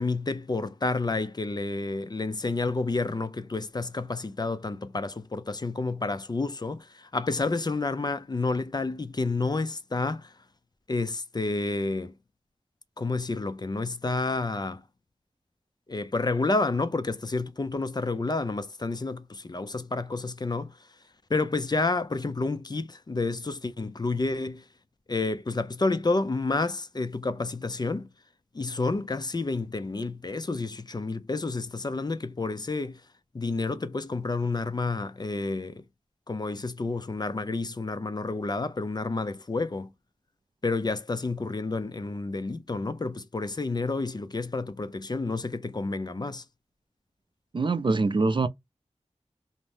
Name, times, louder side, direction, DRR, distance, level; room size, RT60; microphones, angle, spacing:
voice 1, 0.0-10.3 10.9-12.1 13.0-14.8 15.9-20.8 21.3-24.6 25.1-28.1 28.5-33.0 33.3-35.8 36.3-39.9 40.6-46.4, left 3 dB, 35° left, 0.4 m, -30 dB
voice 2, 47.5-48.5, right 3 dB, 40° right, 0.4 m, -24 dB
2.7 x 2.1 x 3.2 m
wide cardioid pair, 60°, 12 cm